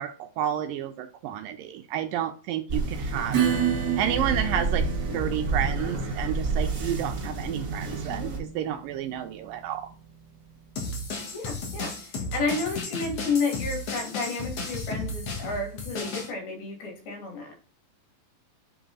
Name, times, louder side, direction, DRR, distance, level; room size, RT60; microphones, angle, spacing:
voice 1, 0.0-3.4 4.0-4.9 5.1-9.9, right 10 dB, 80° right, 7 dB, 2.1 m, -31 dB
sound 1, 2.7-8.4, right 3 dB, 65° right, 0.8 m, -30 dB
Acoustic guitar / Strum, 3.3-10.5, right 8 dB, 45° right, 1.5 m, -31 dB
sound 2, 10.8-16.3, left 3 dB, 50° left, 2.0 m, -34 dB
voice 2, 11.3-17.6, left 4 dB, 75° left, 2 dB, 4.2 m, -31 dB
8.1 x 3.8 x 3.9 m, 0.37 s
omnidirectional pair, 4.4 m